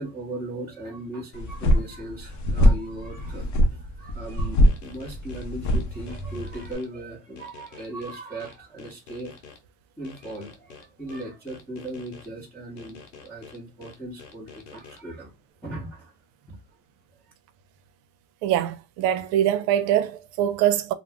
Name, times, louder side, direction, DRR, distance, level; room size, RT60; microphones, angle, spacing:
voice 1, 0.0-9.3 10.0-15.3 15.6-16.1 16.5-16.6, right 1 dB, 5° left, 0.9 m, -38 dB
sound 1, 1.3-6.7, equal, 35° left, 0.6 m, -23 dB
sound 2, 4.6-6.9 7.4-9.6 10.0-12.3 12.8-15.0, left 5 dB, 85° left, 1.0 m, -47 dB
voice 2, 18.4-20.9, right 11 dB, 75° right, 0.6 m, -23 dB
2.4 x 2.1 x 3.4 m
supercardioid pair, 115°, 49 cm